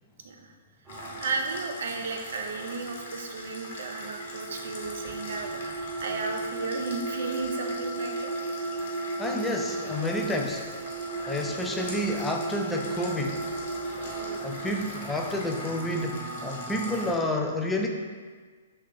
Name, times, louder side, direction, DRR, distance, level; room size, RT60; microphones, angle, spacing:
sound 1, 0.8-17.2, right 2 dB, 10° right, 0.8 m, -36 dB
sound 2, 0.9-17.1, left 2 dB, 60° left, 0.9 m, -43 dB
voice 1, 1.2-8.4 11.7-11.8 14.2-14.4, right 4 dB, 70° right, 3 dB, 0.5 m, -34 dB
voice 2, 9.2-10.6 11.2-13.4 14.4-17.9, left 1 dB, 5° left, 1 dB, 0.3 m, -30 dB
3.2 x 2.8 x 3.6 m, 1.5 s
hypercardioid pair, 145°, 0 cm